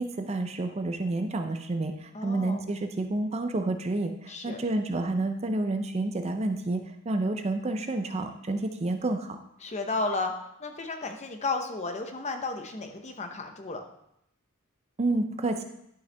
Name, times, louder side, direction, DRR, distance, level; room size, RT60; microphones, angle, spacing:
voice 1, 0.0-9.4 15.0-15.6, right 2 dB, 30° right, 6 dB, 0.5 m, -29 dB
voice 2, 2.1-2.6 4.3-4.6 9.6-10.3 10.6-13.8, left 3 dB, 30° left, 5 dB, 0.8 m, -33 dB
11.0 x 5.6 x 3.4 m, 0.78 s
head